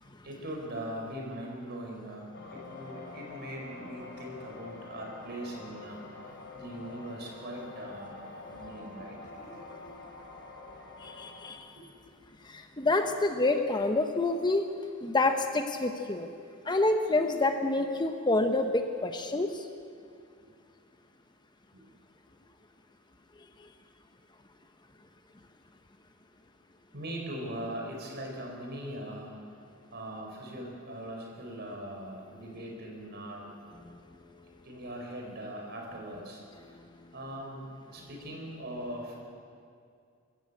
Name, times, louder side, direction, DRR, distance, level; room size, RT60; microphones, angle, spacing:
voice 1, 0.2-9.9 11.8-11.9 20.4-20.5 21.7-21.8 26.9-29.4 29.9-33.8 34.6-36.8 37.1-39.2, right 1 dB, 50° right, 0 dB, 4.7 m, -41 dB
sound 1, 2.3-11.5, left 3 dB, 55° left, 3.5 m, -46 dB
voice 2, 11.0-11.7 12.4-14.7 15.0-16.3 16.6-19.7, left 2 dB, 20° left, 6 dB, 0.9 m, -27 dB
23.0 x 14.5 x 8.4 m, 2.4 s
head